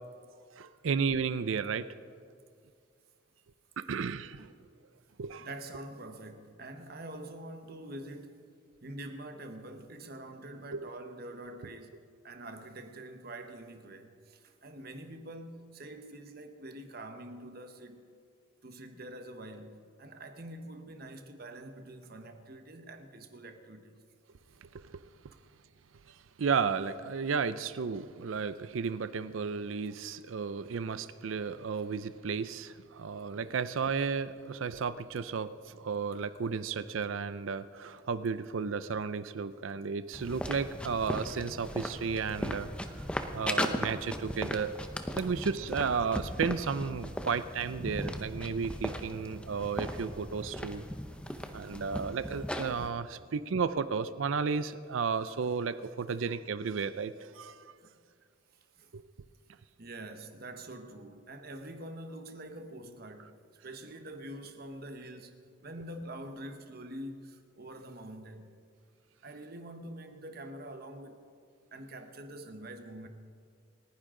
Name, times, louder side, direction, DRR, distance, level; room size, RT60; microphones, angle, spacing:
voice 1, 0.6-1.9 3.8-4.5 5.2-5.5 10.7-10.8 24.7-25.0 26.4-42.7 43.3-44.7 45.2-50.8 51.5-57.6 58.9-59.0, right 5 dB, 80° right, 0.5 m, -33 dB
voice 2, 5.4-8.5 8.8-18.1 18.6-24.0 25.3-25.4 51.2-51.5 53.2-53.3 57.8-58.0 58.7-58.9 59.8-68.5 69.2-71.2 71.7-73.1, right 1 dB, 50° right, 1.1 m, -45 dB
sound 1, 40.1-52.9, equal, 5° left, 0.7 m, -37 dB
29.0 x 10.0 x 3.8 m
head